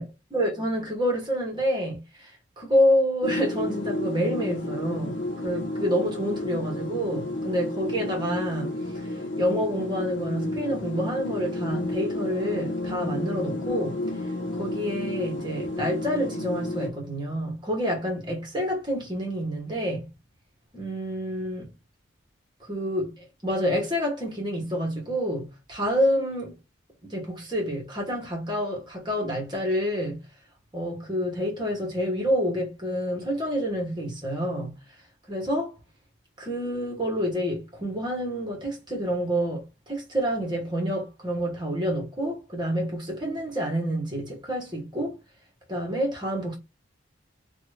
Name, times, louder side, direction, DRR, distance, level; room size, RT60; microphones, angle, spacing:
voice 1, 0.3-2.3 2.6-5.2 5.4-14.0 14.5-20.0 20.7-21.7 22.7-26.5 27.0-30.2 30.7-34.7 35.3-35.8 36.4-45.2 45.7-46.6, equal, 20° right, 1.2 m, -28 dB
sound 1, 3.2-16.9, left 1 dB, 65° left, 0.8 m, -31 dB
2.9 x 2.4 x 3.1 m
head